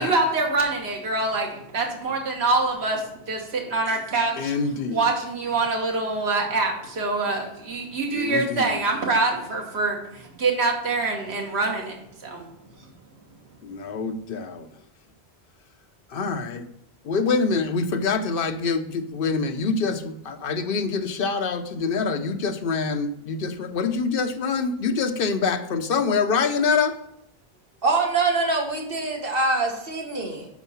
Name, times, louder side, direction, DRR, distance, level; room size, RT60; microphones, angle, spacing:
voice 1, 0.0-4.5 4.9-12.0 12.2-12.5, right 3 dB, 80° right, 0 dB, 1.5 m, -25 dB
voice 2, 4.4-5.1 8.1-8.9 13.6-14.7 16.1-16.7 17.0-27.0, left 4 dB, 60° left, 8 dB, 0.9 m, -25 dB
voice 3, 27.8-30.5, right 3 dB, 60° right, 1 dB, 1.6 m, -24 dB
7.1 x 4.5 x 5.6 m, 0.80 s
omnidirectional pair, 1.1 m